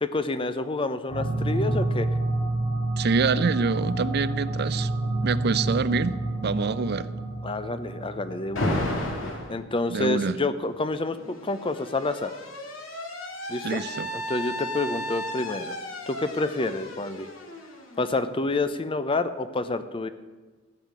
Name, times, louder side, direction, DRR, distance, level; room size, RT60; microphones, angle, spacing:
voice 1, 0.0-2.1 7.4-8.9 9.5-12.3 13.5-13.8 14.1-15.7 16.1-17.3 18.0-20.1, left 2 dB, 25° left, 12 dB, 0.7 m, -28 dB
sound 1, 1.1-9.5, right 2 dB, 50° left, 3.3 m, -29 dB
voice 2, 3.0-4.9 5.2-7.1 9.9-10.4 13.6-14.1, right 4 dB, 55° right, 16 dB, 0.5 m, -26 dB
Alarm, 8.6-9.5 10.7-18.4, left 1 dB, 75° left, 2.5 m, -34 dB
14.5 x 6.5 x 9.6 m, 1.3 s
head